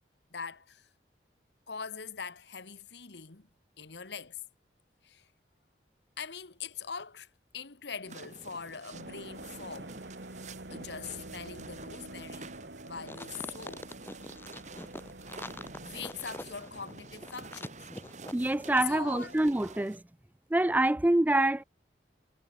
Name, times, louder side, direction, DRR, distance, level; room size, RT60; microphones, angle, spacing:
voice 1, 0.3-0.9 1.7-3.5 3.8-4.4 5.0-5.3 6.2-7.3 7.5-10.0 10.7-12.5 12.8-13.9 15.8-17.9 18.9-19.3, left 6 dB, 75° left, 1.5 m, -42 dB
sound 1, 8.0-20.0, right 3 dB, 40° right, 2.0 m, -49 dB
sound 2, 8.9-17.5, right 1 dB, 70° right, 3.7 m, -47 dB
sound 3, 13.0-18.9 19.2-19.3, left 1 dB, 10° left, 1.3 m, -44 dB
voice 2, 18.3-20.0 20.5-21.6, right 1 dB, 10° right, 0.3 m, -26 dB
head